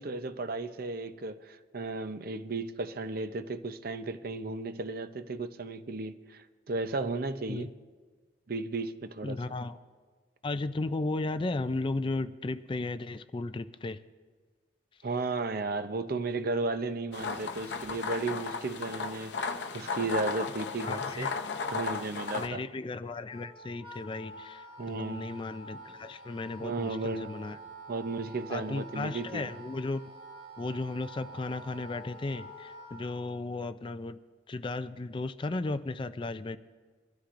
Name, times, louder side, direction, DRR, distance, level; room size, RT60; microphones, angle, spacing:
voice 1, 0.0-7.7 8.5-9.4 15.0-21.3 21.7-22.6 24.8-25.3 26.6-27.3 27.9-29.5, right 3 dB, 55° right, 10 dB, 0.6 m, -34 dB
voice 2, 9.2-9.8 10.4-14.0 20.8-21.3 22.3-27.6 28.5-30.0 30.6-34.2 34.5-36.6, left 2 dB, 30° left, 12 dB, 0.4 m, -35 dB
sound 1, 17.1-22.5, left 5 dB, 70° left, 0.7 m, -35 dB
Wind instrument woodwind instrument, 23.3-33.3, right 1 dB, 30° right, 4.4 m, -48 dB
23.0 x 13.0 x 2.6 m, 1.5 s
head